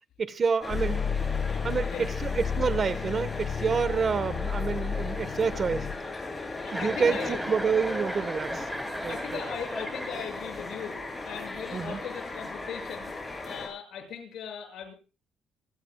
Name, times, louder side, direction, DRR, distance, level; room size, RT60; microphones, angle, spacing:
voice 1, 0.2-1.0 1.6-5.9 6.7-7.2 7.5-8.7 9.0-9.4 11.7-12.0, right 5 dB, 45° right, 14 dB, 1.3 m, -28 dB
sound 1, 0.6-13.7, left 2 dB, 20° left, 7.8 m, -38 dB
sound 2, 0.7-6.0, left 7 dB, 55° left, 1.8 m, -32 dB
voice 2, 1.6-2.1 6.6-7.4 9.1-13.1 13.4-14.9, left 8 dB, 75° left, 3 dB, 7.1 m, -39 dB
Chuckle chortle, 6.6-10.7, equal, 5° right, 4.4 m, -36 dB
27.5 x 15.5 x 2.4 m, 0.34 s
cardioid pair, 90°, 0 cm